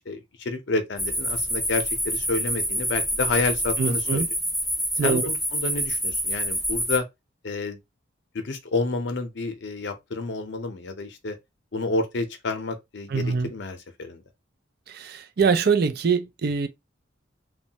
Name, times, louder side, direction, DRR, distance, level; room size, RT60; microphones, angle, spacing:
voice 1, 0.0-4.3 5.0-7.0 7.4-7.8 8.3-11.4 11.7-14.2, left 3 dB, 60° left, 0.6 m, -29 dB
sound 1, 1.0-7.0, equal, ahead, 0.5 m, -27 dB
voice 2, 3.8-4.3 5.0-5.3 13.1-13.5 14.9-16.7, right 5 dB, 55° right, 0.4 m, -24 dB
3.1 x 2.2 x 2.8 m
head